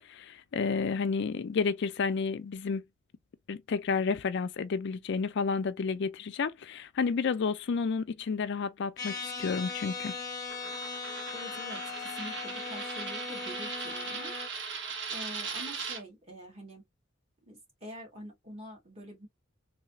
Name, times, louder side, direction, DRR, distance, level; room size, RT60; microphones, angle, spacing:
voice 1, 0.1-2.8 3.5-10.2, left 5 dB, 60° left, 0.4 m, -31 dB
sound 1, 9.0-14.5, left 4 dB, 20° left, 0.8 m, -39 dB
Coin (dropping), 10.5-16.0, right 5 dB, 60° right, 1.0 m, -39 dB
voice 2, 11.3-14.3 14.6-14.7 15.1-16.8 17.4-19.3, equal, 30° right, 1.7 m, -46 dB
3.2 x 2.7 x 2.7 m
head